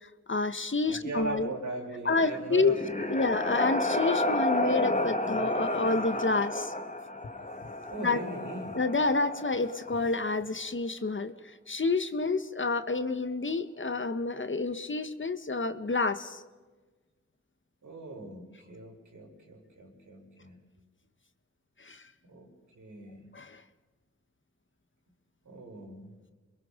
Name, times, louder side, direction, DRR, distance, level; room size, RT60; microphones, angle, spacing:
voice 1, 0.0-1.5 2.0-2.7 3.1-6.7 8.0-8.2 8.7-16.4 21.8-22.0 23.3-23.6, left 3 dB, 40° left, 10 dB, 1.5 m, -29 dB
voice 2, 0.9-3.1 7.9-8.8 17.8-20.6 22.2-22.5 22.7-23.2 25.4-26.1, right 2 dB, 85° right, 0 dB, 5.8 m, -39 dB
sound 1, 2.3-10.2, left 1 dB, 25° left, 2.1 m, -31 dB
26.5 x 22.0 x 5.3 m, 1.3 s
cardioid pair, 50°, 29 cm